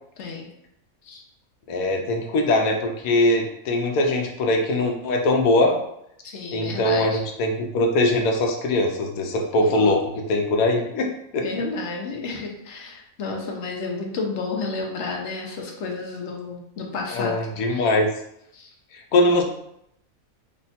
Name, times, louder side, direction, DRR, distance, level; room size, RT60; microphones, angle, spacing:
voice 1, 0.2-0.5 1.0-1.2 6.2-7.2 9.6-10.0 11.4-17.4 17.7-17.9 18.5-18.7, left 3 dB, 60° left, 1 dB, 0.9 m, -31 dB
voice 2, 1.7-5.8 6.5-11.5 17.1-18.1 18.9-19.4, left 2 dB, 80° left, 1 dB, 1.1 m, -21 dB
3.3 x 2.2 x 4.1 m, 0.76 s
omnidirectional pair, 1.5 m